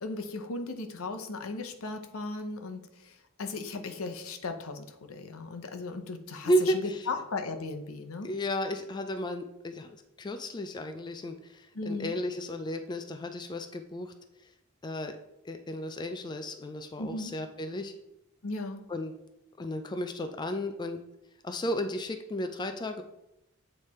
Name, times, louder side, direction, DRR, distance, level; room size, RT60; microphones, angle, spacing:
voice 1, 0.0-8.3 11.7-12.2 17.0-17.3 18.4-18.8, left 3 dB, 75° left, 6 dB, 0.7 m, -37 dB
voice 2, 6.4-7.1 8.2-14.1 14.8-15.2 15.4-17.9 18.9-19.1 19.6-21.0 21.4-23.0, equal, 20° left, 7 dB, 0.3 m, -33 dB
8.3 x 3.2 x 4.2 m, 0.89 s
head